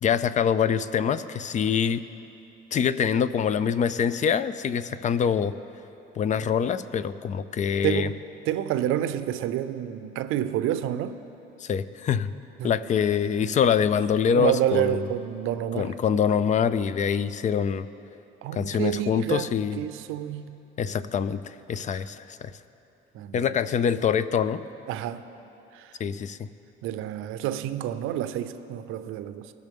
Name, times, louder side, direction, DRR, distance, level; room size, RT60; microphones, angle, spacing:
voice 1, 0.0-2.0 2.7-5.5 6.2-8.1 11.6-12.3 12.6-15.0 15.7-17.9 18.5-19.8 20.8-22.5 23.3-24.6 26.0-26.5, left 7 dB, 35° left, 15 dB, 0.4 m, -25 dB
voice 2, 7.8-8.2 8.5-11.2 12.6-12.7 14.3-15.9 18.4-20.6 21.9-22.0 23.1-23.6 24.9-25.2 25.7-25.9 26.8-29.5, right 11 dB, 75° right, 11 dB, 0.5 m, -29 dB
19.0 x 6.6 x 3.5 m, 3.0 s
cardioid pair, 100°, 21 cm